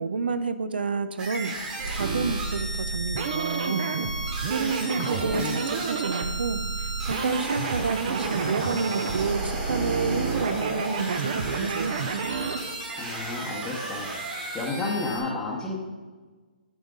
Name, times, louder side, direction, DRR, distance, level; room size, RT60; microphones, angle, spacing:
voice 1, 0.0-3.9 4.5-12.0, right 4 dB, 85° right, 12 dB, 0.7 m, -30 dB
sound 1, 1.2-15.2, right 2 dB, 15° right, 1.3 m, -34 dB
sound 2, 1.8-12.6, right 5 dB, 40° right, 0.6 m, -30 dB
voice 2, 4.8-5.6 13.0-15.8, left 3 dB, 10° left, -5 dB, 0.9 m, -32 dB
9.2 x 7.2 x 3.8 m, 1.4 s
hypercardioid pair, 165°, 5 cm